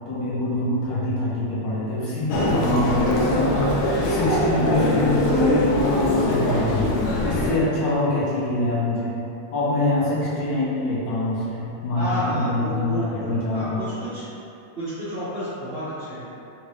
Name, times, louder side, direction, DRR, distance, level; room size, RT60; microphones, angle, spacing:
voice 1, 0.1-6.9 7.2-9.1 9.5-13.8, left 2 dB, 70° left, -8 dB, 1.3 m, -24 dB
Human voice, 2.3-7.6, left 1 dB, 85° left, 0.8 m, -22 dB
voice 2, 11.9-14.2 14.8-16.4, equal, 50° right, -15 dB, 0.7 m, -30 dB
3.7 x 2.6 x 3.1 m, 2.8 s
omnidirectional pair, 2.3 m